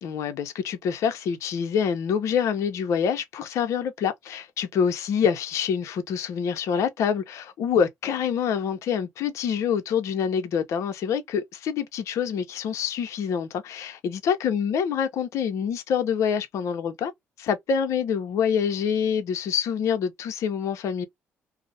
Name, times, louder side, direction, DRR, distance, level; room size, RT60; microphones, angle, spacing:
voice 1, 0.0-17.1 17.4-21.1, left 7 dB, 70° left, 0.6 m, -26 dB
2.3 x 2.0 x 2.6 m
supercardioid pair, 70°, 5 cm